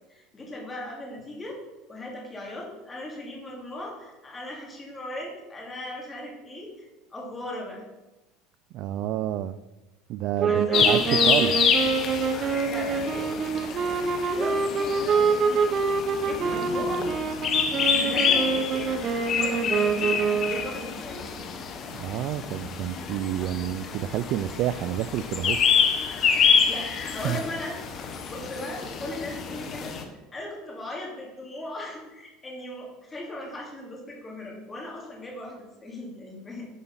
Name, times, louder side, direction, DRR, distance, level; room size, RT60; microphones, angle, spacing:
voice 1, 0.1-1.6 1.9-7.8 10.4-11.6 12.3-14.1 14.3-15.7 16.2-17.0 17.9-21.3 26.7-27.9 28.3-29.9 30.3-36.7, left 1 dB, 20° left, -2 dB, 3.0 m, -38 dB
voice 2, 8.7-9.6 10.1-11.5 21.9-25.6 27.2-27.4, right 12 dB, 55° right, 13 dB, 0.4 m, -29 dB
sound 1, 10.4-20.7, right 5 dB, 35° right, 0.9 m, -26 dB
sound 2, 10.7-30.0, left 6 dB, 40° left, 1.3 m, -27 dB
10.0 x 4.9 x 5.6 m, 1.0 s
supercardioid pair, 125°, 0 cm